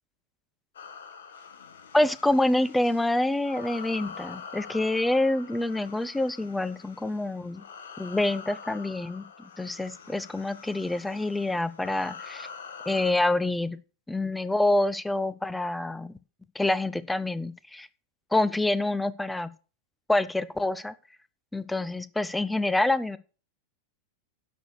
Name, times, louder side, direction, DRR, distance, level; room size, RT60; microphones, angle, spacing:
sound 1, 0.7-13.1, left 6 dB, 65° left, 1.3 m, -45 dB
voice 1, 1.9-7.6 8.0-9.2 9.6-12.5 12.9-13.8 14.1-16.1 16.5-17.9 18.3-19.5 20.1-20.9 21.5-23.2, left 2 dB, 5° left, 17 dB, 0.6 m, -26 dB
10.0 x 6.5 x 6.6 m, 0.37 s
figure-of-eight pair, 90°, 0 cm